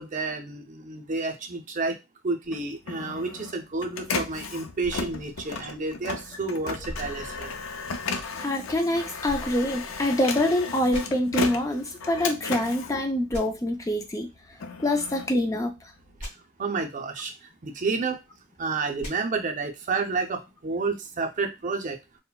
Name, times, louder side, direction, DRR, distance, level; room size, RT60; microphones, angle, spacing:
voice 1, 0.0-1.9 2.2-7.5 16.6-18.2 18.6-22.0, right 3 dB, 40° right, 4 dB, 0.5 m, -30 dB
Printer, 2.4-13.9 14.3-16.2, left 4 dB, 85° left, 0.4 m, -35 dB
sound 1, 4.8-6.2 6.8-8.1 9.2-10.4 10.9-11.0 13.3-13.4 16.2-16.3 19.0-19.1, equal, 40° left, 1.6 m, -41 dB
voice 2, 8.4-14.3 14.8-15.7, left 1 dB, 15° left, 5 dB, 0.3 m, -25 dB
3.9 x 2.1 x 2.2 m, 0.24 s
head